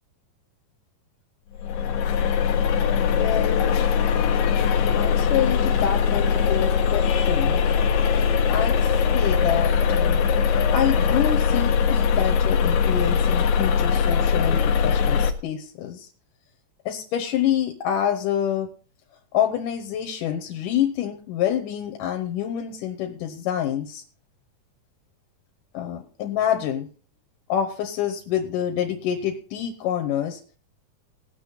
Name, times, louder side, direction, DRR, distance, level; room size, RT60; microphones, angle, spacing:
sound 1, 1.6-15.3, left 6 dB, 70° left, 2.2 m, -21 dB
voice 1, 2.9-3.8 4.9-7.6 8.5-10.2 10.7-16.1 16.9-18.7 19.3-24.0 25.7-26.9 27.5-30.4, left 10 dB, 90° left, 4 dB, 2.6 m, -27 dB
19.5 x 6.9 x 4.1 m, 0.39 s
omnidirectional pair, 3.7 m